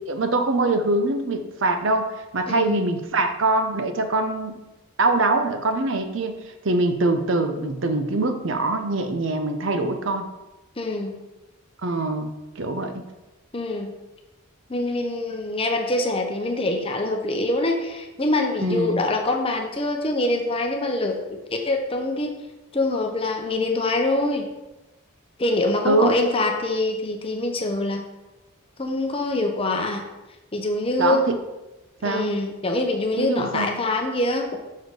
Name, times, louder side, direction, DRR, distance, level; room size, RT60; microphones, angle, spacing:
voice 1, 0.1-4.5 5.0-6.4 6.6-10.3 11.8-13.0 18.6-19.0 25.8-26.1 31.0-31.4 32.0-32.3 33.2-33.7, right 2 dB, 60° right, 7 dB, 0.6 m, -23 dB
voice 2, 2.5-2.8 10.8-11.2 13.5-14.0 14.7-21.4 21.6-22.3 22.7-24.5 25.4-28.0 28.8-30.0 30.5-31.3 32.0-34.5, left 2 dB, 25° left, 3 dB, 0.7 m, -24 dB
6.4 x 4.1 x 4.7 m, 1.0 s
head